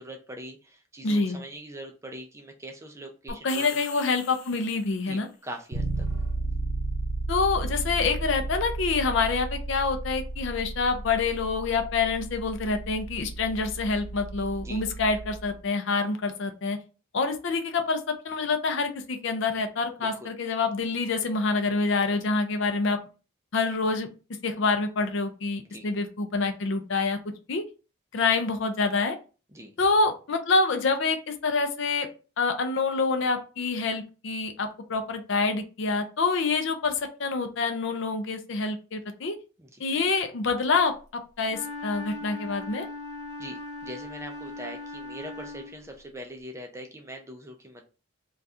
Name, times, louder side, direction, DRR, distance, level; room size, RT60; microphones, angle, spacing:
voice 1, 0.0-3.7 5.1-6.1 14.6-14.8 20.0-20.3 25.6-25.9 29.5-29.7 39.6-39.8 43.4-47.8, right 1 dB, 15° right, 3 dB, 0.4 m, -42 dB
voice 2, 1.0-1.4 3.4-5.3 7.3-16.8 17.1-23.0 23.5-24.1 24.4-27.2 27.5-27.6 28.1-29.2 29.8-32.1 32.4-39.4 39.8-40.9 41.4-42.9, left 4 dB, 60° left, 7 dB, 0.5 m, -26 dB
sound 1, 3.3-5.2, left 6 dB, 90° left, 0.7 m, -42 dB
Bass guitar, 5.7-15.6, right 2 dB, 65° right, 0.6 m, -33 dB
Wind instrument woodwind instrument, 41.4-46.0, left 2 dB, 15° left, 0.9 m, -39 dB
2.6 x 2.3 x 3.4 m, 0.34 s
head